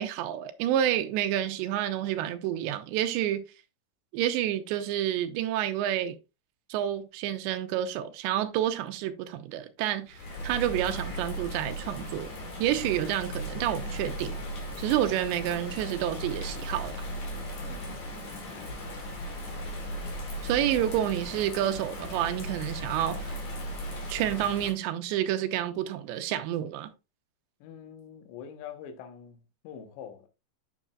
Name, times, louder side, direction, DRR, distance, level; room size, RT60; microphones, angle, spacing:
voice 1, 0.0-3.5 4.1-6.2 6.7-12.3 12.6-14.4 14.8-17.0 20.4-23.3 24.1-26.9, right 11 dB, 80° right, 2.9 m, -29 dB
Bird vocalization bird call bird song / Rain, 10.1-24.7, equal, 45° left, 3.0 m, -37 dB
voice 2, 17.6-18.2 27.6-30.3, left 8 dB, 80° left, 3.3 m, -45 dB
8.7 x 7.1 x 2.4 m
omnidirectional pair, 5.2 m